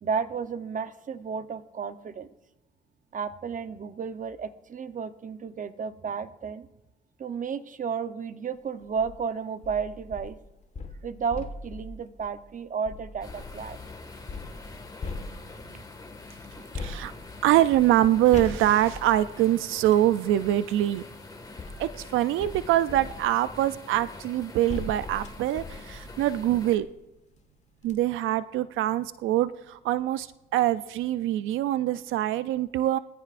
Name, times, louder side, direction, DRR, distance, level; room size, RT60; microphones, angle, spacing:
voice 1, 0.0-2.3 3.1-6.7 7.2-10.4 11.0-13.8 15.7-15.8, right 6 dB, 40° right, 11 dB, 0.8 m, -33 dB
sound 1, 8.8-9.2 9.6-13.7 14.3-15.8 16.7-20.1 21.0-27.0 27.4-27.5 27.8-28.0, left 3 dB, 35° left, 1.6 m, -41 dB
sound 2, 13.2-26.8, left 3 dB, 20° left, 1.8 m, -45 dB
voice 2, 16.7-17.1 17.4-21.0 21.8-26.9 27.8-33.0, right 13 dB, 85° right, 14 dB, 0.5 m, -24 dB
21.5 x 14.0 x 2.5 m, 0.99 s
cardioid pair, 90°, 20 cm